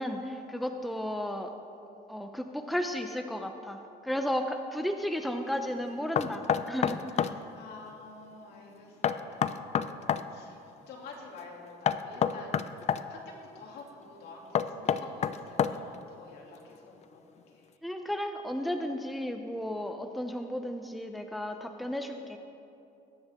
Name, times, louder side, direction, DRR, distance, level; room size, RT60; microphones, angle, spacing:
voice 1, 0.0-1.5 2.1-7.3 17.8-22.4, equal, ahead, 5 dB, 0.8 m, -34 dB
Knock, 6.2-7.4 9.0-10.3 11.9-13.0 14.6-16.0, left 8 dB, 40° left, 0.5 m, -28 dB
voice 2, 7.5-10.6 10.9-12.6 13.1-14.5 14.7-16.6 16.8-17.2, left 4 dB, 70° left, -2 dB, 2.9 m, -48 dB
21.5 x 9.4 x 3.7 m, 2.6 s
cardioid pair, 110°, 17 cm